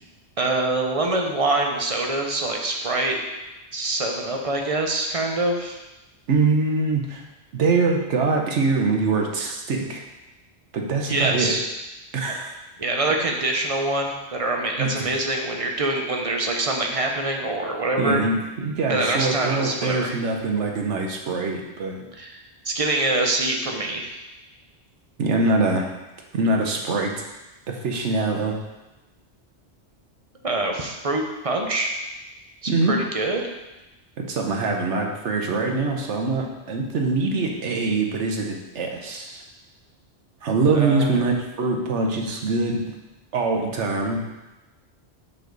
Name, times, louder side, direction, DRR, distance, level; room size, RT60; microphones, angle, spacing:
voice 1, 0.4-3.2 3.7-5.8 11.1-11.6 12.8-18.2 18.9-20.2 22.2-24.2 30.4-31.9 32.6-33.4 40.7-41.2, right 2 dB, 35° right, 1 dB, 0.8 m, -25 dB
voice 2, 6.3-7.2 7.5-10.0 10.7-11.6 12.1-12.5 14.8-15.1 18.0-22.1 25.2-25.9 26.3-27.1 27.7-28.6 32.7-32.9 34.2-39.4 40.4-42.8 43.3-44.2, right 3 dB, 90° right, 1 dB, 1.2 m, -23 dB
6.5 x 5.6 x 3.9 m, 1.0 s
omnidirectional pair, 1.2 m